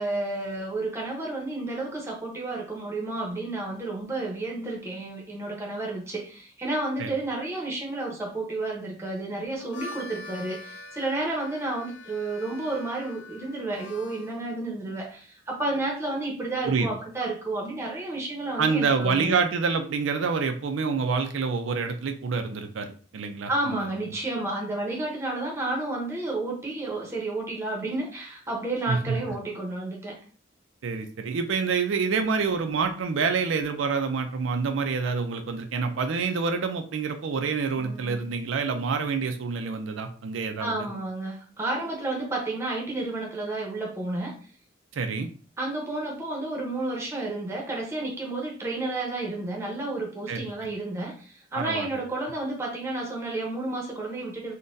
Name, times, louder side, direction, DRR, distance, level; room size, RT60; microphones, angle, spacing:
voice 1, 0.0-19.4 23.5-30.2 37.7-38.3 40.6-44.3 45.6-54.5, right 2 dB, 15° right, -2 dB, 0.8 m, -31 dB
Harmonica, 9.5-14.4, left 2 dB, 80° left, 0.4 m, -44 dB
voice 2, 18.6-23.8 28.9-29.2 30.8-40.9 44.9-45.3 50.3-50.5 51.5-51.9, right 5 dB, 90° right, 6 dB, 0.4 m, -27 dB
3.8 x 2.2 x 2.5 m, 0.41 s
head